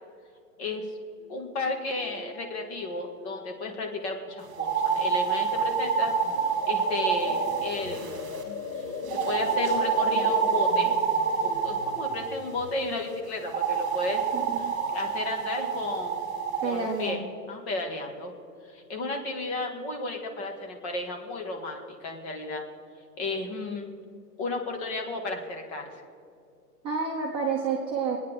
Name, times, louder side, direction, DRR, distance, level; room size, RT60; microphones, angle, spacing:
sound 1, 1.2-1.3 1.5-4.0 4.3-4.6 4.9-5.4 5.8-12.8, left 5 dB, 60° left, 2.8 m, -39 dB
voice 1, 1.3-6.1 6.7-8.4 9.3-10.9 11.4-14.2 14.6-16.3 16.6-17.2 17.5-18.3 18.7-22.6 23.2-23.9 24.4-25.8, left 2 dB, 40° left, 2 dB, 2.1 m, -33 dB
sound 2, 4.5-8.4 9.1-12.4 13.4-16.7, right 6 dB, 35° right, 2.5 m, -27 dB
voice 2, 14.3-14.7 16.6-17.2 26.8-28.2, right 5 dB, 10° right, -4 dB, 0.7 m, -29 dB
24.0 x 9.4 x 3.7 m, 2.4 s
hypercardioid pair, 155°, 48 cm